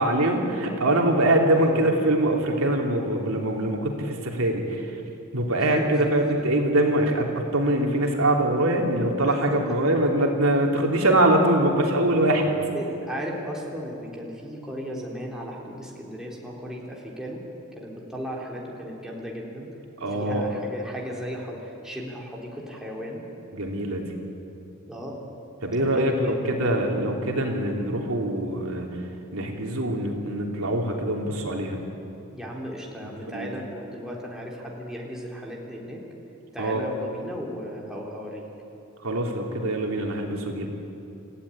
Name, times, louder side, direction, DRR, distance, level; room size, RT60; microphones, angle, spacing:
voice 1, 0.0-5.0 5.3-12.6 20.0-20.5 23.5-24.2 25.6-28.9 29.3-31.8 33.0-33.5 36.6-36.9 39.0-40.7, right 1 dB, 70° right, 1 dB, 3.2 m, -23 dB
voice 2, 5.6-6.4 9.2-9.7 12.7-17.4 17.8-19.7 20.0-23.2 24.9-25.2 25.8-26.7 32.3-36.0 36.5-38.5, equal, 5° right, -3 dB, 3.5 m, -36 dB
28.0 x 15.5 x 9.9 m, 3.0 s
head